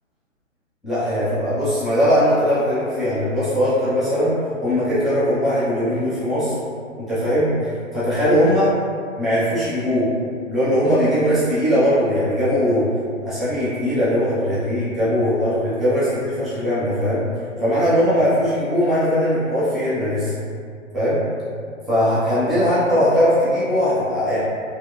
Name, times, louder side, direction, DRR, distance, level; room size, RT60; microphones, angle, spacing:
voice 1, 0.8-4.4 4.6-6.6 7.0-8.7 9.2-10.1 10.5-12.9 13.2-17.2 17.6-20.3 20.9-21.2 21.9-24.4, equal, ahead, -14 dB, 0.4 m, -20 dB
2.8 x 2.6 x 2.2 m, 2.3 s
hypercardioid pair, 180°, 40 cm